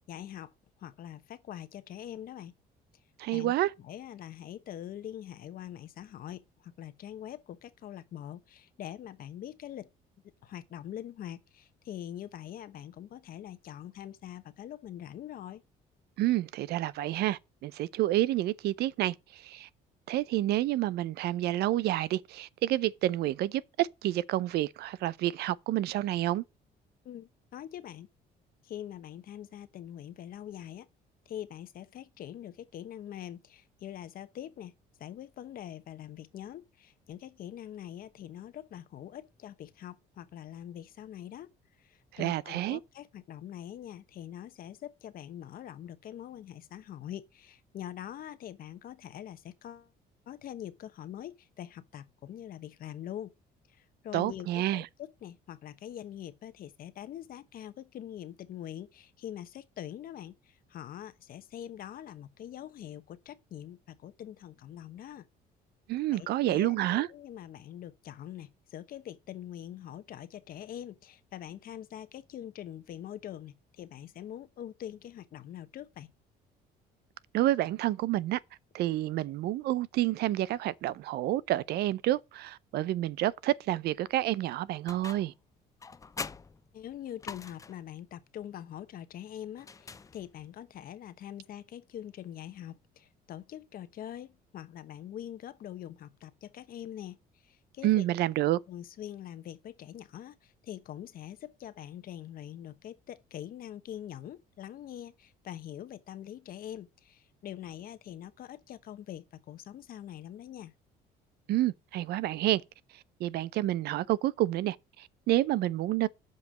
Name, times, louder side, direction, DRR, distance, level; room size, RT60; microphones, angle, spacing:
voice 1, 0.1-0.5 0.8-2.5 3.3-9.9 10.4-15.6 27.0-28.1 28.6-30.9 31.2-41.5 41.8-49.9 50.3-53.3 53.7-65.3 66.1-76.1 86.7-97.2 97.4-98.1 98.7-110.7, left 11 dB, 60° left, 1.1 m, -44 dB
voice 2, 3.2-3.7 16.2-19.7 20.1-26.4 42.1-42.8 54.1-54.9 65.9-67.1 77.3-78.4 78.7-85.3 97.8-98.6 111.5-112.6 113.2-116.1, right 15 dB, 70° right, 0.5 m, -29 dB
sound 1, 84.9-85.4 85.8-87.9 89.6-90.5, left 5 dB, 20° left, 0.5 m, -43 dB
7.7 x 5.4 x 6.2 m
cardioid pair, 110°, 17 cm